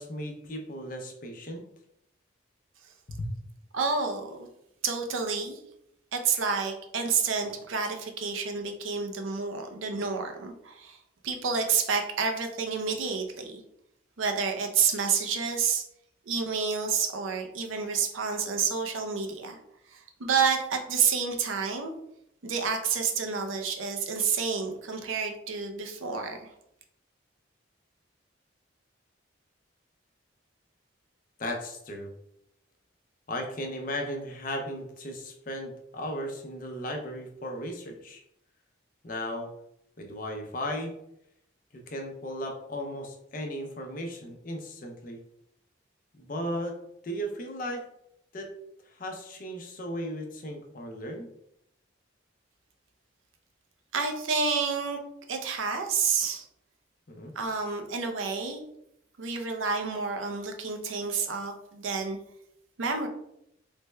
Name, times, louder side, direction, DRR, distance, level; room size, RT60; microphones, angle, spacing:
voice 1, 0.0-1.6 3.1-3.3 31.4-32.1 33.3-38.2 39.0-39.5 40.0-40.9 41.7-45.2 46.1-46.8 47.0-47.8 48.3-48.5 48.9-51.3 57.1-57.3, equal, 45° left, 2 dB, 0.5 m, -36 dB
voice 2, 3.7-4.4 4.8-5.6 6.1-11.0 11.2-13.6 14.2-15.8 16.3-19.6 19.9-21.9 22.4-26.4 53.9-55.0 55.3-56.4 57.4-58.6 59.2-62.2 62.8-63.1, right 5 dB, 85° right, 5 dB, 0.5 m, -29 dB
3.3 x 2.1 x 3.2 m, 0.76 s
head